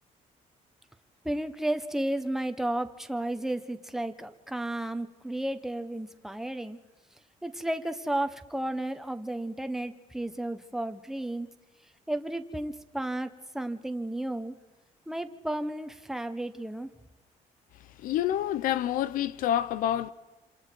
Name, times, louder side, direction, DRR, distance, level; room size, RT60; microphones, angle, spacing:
voice 1, 1.2-6.8 7.4-11.5 12.1-14.5 15.1-16.9, right 1 dB, 5° right, 1.2 m, -33 dB
voice 2, 18.0-20.1, left 11 dB, 90° left, 0.8 m, -27 dB
28.5 x 27.0 x 4.6 m
cardioid pair, 145°, 14 cm